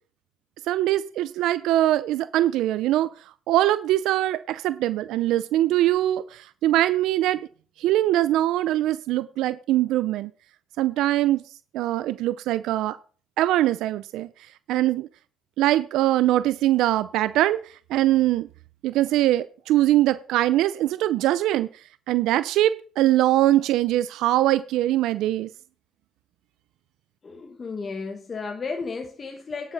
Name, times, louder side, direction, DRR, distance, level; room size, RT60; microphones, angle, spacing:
voice 1, 0.7-3.1 3.5-7.5 7.8-10.3 10.8-11.4 11.7-13.0 13.4-14.3 14.7-15.1 15.6-17.6 17.9-18.5 18.8-21.7 22.1-25.5, right 14 dB, 80° right, 0.4 m, -22 dB
voice 2, 27.2-29.7, left 4 dB, 35° left, 1.5 m, -33 dB
10.5 x 6.4 x 5.6 m
supercardioid pair, 85°, 0 cm